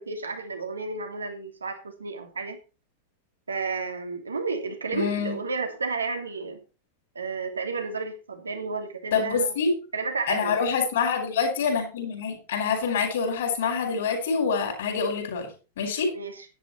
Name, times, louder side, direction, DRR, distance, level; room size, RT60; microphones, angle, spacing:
voice 1, 0.0-2.6 3.5-6.6 7.1-9.5 9.9-10.6 16.1-16.4, right 4 dB, 75° right, 5 dB, 2.7 m, -32 dB
voice 2, 4.9-5.4 9.1-9.7 10.3-15.5 15.8-16.1, left 5 dB, 60° left, 4 dB, 5.2 m, -26 dB
11.0 x 11.0 x 4.2 m, 0.33 s
figure-of-eight pair, 90°, 0 cm